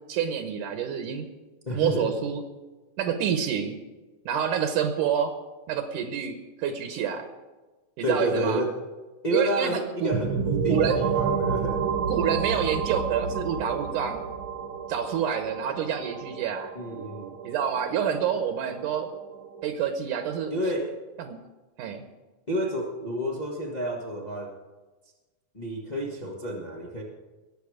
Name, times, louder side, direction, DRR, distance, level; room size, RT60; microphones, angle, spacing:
voice 1, 0.1-1.3 1.7-2.4 3.0-3.8 4.3-5.3 5.7-7.3 8.0-8.6 9.3-10.1 10.7-11.0 12.1-14.2 14.9-16.7 17.4-19.1 19.6-20.5 21.3-21.4 21.8-22.0, right 8 dB, 75° right, 7 dB, 2.3 m, -27 dB
voice 2, 1.6-2.1 8.0-8.8 9.2-11.9 16.7-17.4 20.5-21.0 22.5-24.5 25.5-27.0, equal, 65° left, -1 dB, 0.4 m, -30 dB
sound 1, 10.1-19.7, right 6 dB, 55° right, 1.5 m, -30 dB
20.5 x 7.8 x 4.9 m, 1.2 s
omnidirectional pair, 3.9 m